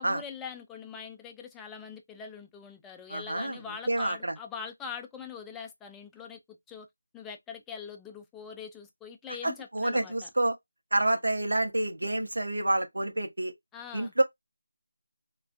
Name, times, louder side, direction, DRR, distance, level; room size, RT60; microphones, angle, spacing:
voice 1, 0.0-6.9 7.1-10.3 13.7-14.1, left 6 dB, 5° left, 0.3 m, -43 dB
voice 2, 3.1-3.6 3.9-4.3 9.4-10.6 10.9-13.5 13.9-14.2, right 1 dB, 85° right, 0.7 m, -28 dB
2.3 x 2.2 x 2.5 m
figure-of-eight pair, 165°, 0 cm